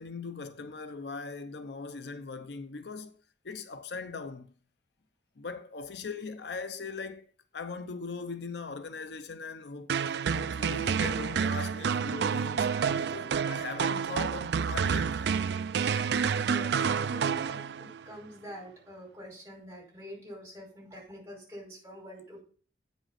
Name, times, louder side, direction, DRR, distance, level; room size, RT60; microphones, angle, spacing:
voice 1, 0.0-3.2 3.4-4.5 5.4-9.9 10.3-15.2, left 4 dB, 70° left, 0.7 m, -40 dB
sound 1, 9.9-18.0, right 6 dB, 70° right, 0.4 m, -29 dB
voice 2, 16.4-22.4, equal, 15° right, 5.2 m, -46 dB
8.7 x 5.5 x 5.7 m
head